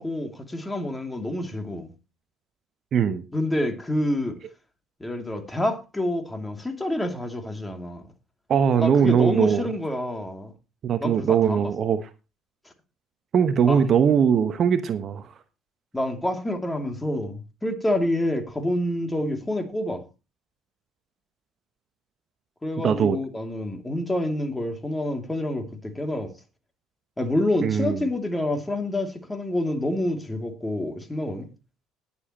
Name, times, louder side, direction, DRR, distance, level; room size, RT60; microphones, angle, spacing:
voice 1, 0.0-1.9 3.3-4.4 5.0-8.0 8.8-10.5 11.0-11.7 13.7-13.9 15.9-20.0 22.6-26.3 27.2-31.5, left 1 dB, 10° left, 2.7 m, -28 dB
voice 2, 2.9-3.2 8.5-9.7 10.8-12.1 13.3-15.3 22.8-23.2 27.6-28.1, right 7 dB, 45° right, 0.9 m, -21 dB
19.5 x 7.1 x 3.0 m
figure-of-eight pair, 60°, 0 cm